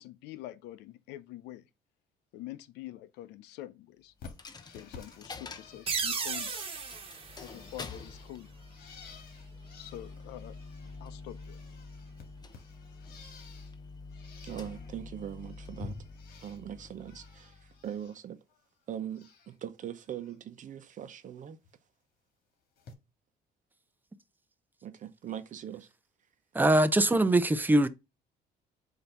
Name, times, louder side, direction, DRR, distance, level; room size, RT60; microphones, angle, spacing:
voice 1, 0.0-1.6 2.3-4.1 4.7-6.5 7.4-8.5 8.8-9.2 9.8-10.6 11.0-11.6, left 15 dB, 90° left, 0.6 m, -46 dB
Bird, 4.2-11.0 11.2-13.8 14.1-14.9 15.3-16.6 16.9-18.2 18.5-19.6 19.9-20.4 21.6-21.8 22.8-22.9, left 5 dB, 65° left, 1.9 m, -54 dB
Coin (dropping), 4.2-18.0, left 3 dB, 25° left, 0.8 m, -47 dB
sound 1, 5.9-8.4, right 5 dB, 35° right, 1.2 m, -36 dB
voice 2, 14.4-16.0 16.4-18.4 18.9-21.6 24.8-25.9, right 9 dB, 50° right, 0.9 m, -41 dB
voice 3, 26.5-27.9, right 1 dB, 10° right, 0.6 m, -22 dB
7.7 x 2.9 x 5.8 m
cardioid pair, 110°, 17 cm